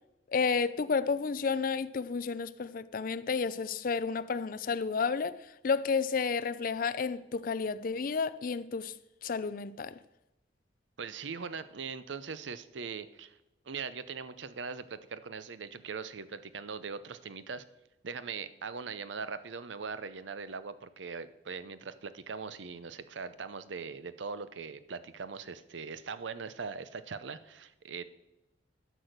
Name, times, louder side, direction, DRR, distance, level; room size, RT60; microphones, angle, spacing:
voice 1, 0.3-5.4 5.6-8.9 9.2-10.0, left 5 dB, 50° left, 0.4 m, -31 dB
voice 2, 11.0-13.4 13.7-17.6 18.0-28.0, right 5 dB, 85° right, 0.6 m, -41 dB
12.0 x 6.3 x 6.5 m
head